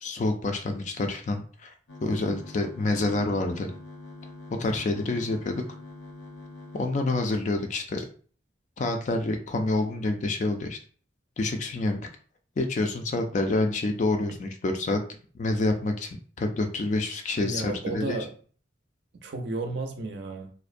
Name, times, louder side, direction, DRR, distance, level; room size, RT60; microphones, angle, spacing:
voice 1, 0.0-1.7 2.0-3.7 4.6-5.6 6.7-8.1 8.8-10.8 11.4-12.0 12.6-15.0 15.3-16.1 16.4-18.2, left 2 dB, 40° left, 0.3 m, -27 dB
sound 1, 1.9-6.9, left 2 dB, 80° left, 0.6 m, -44 dB
voice 2, 17.4-18.3 19.2-20.5, right 3 dB, 60° right, 0.5 m, -32 dB
2.5 x 2.1 x 2.4 m
head